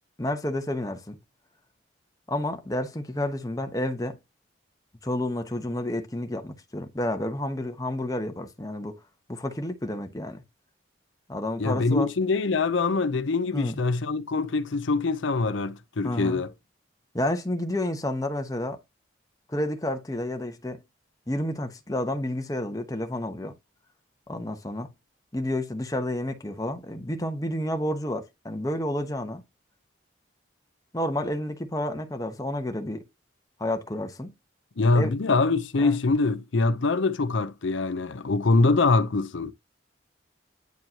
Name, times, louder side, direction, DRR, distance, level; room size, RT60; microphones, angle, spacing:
voice 1, 0.2-1.2 2.3-4.2 5.0-9.0 9.3-10.4 11.3-12.1 13.5-13.7 16.0-16.4 17.1-18.8 19.5-20.8 21.3-23.5 24.3-24.9 25.3-29.4 30.9-33.0 33.6-34.3 34.9-35.1 35.8-36.0, left 1 dB, 20° left, 0.9 m, -30 dB
voice 2, 11.6-16.5 34.8-39.5, left 3 dB, 75° left, 0.6 m, -24 dB
9.3 x 4.6 x 2.8 m
head